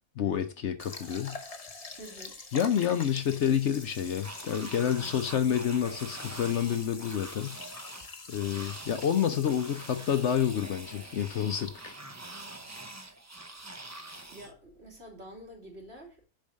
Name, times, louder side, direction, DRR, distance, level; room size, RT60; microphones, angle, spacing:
voice 1, 0.2-1.4 2.5-7.6 8.3-11.9, left 9 dB, 60° left, 0.9 m, -28 dB
sound 1, 0.8-12.7, left 3 dB, 30° left, 1.0 m, -46 dB
voice 2, 2.0-2.4 14.3-16.2, right 1 dB, 50° right, 3.2 m, -47 dB
sound 2, 4.2-14.5, right 2 dB, 15° right, 0.6 m, -45 dB
7.0 x 5.5 x 6.3 m
omnidirectional pair, 1.4 m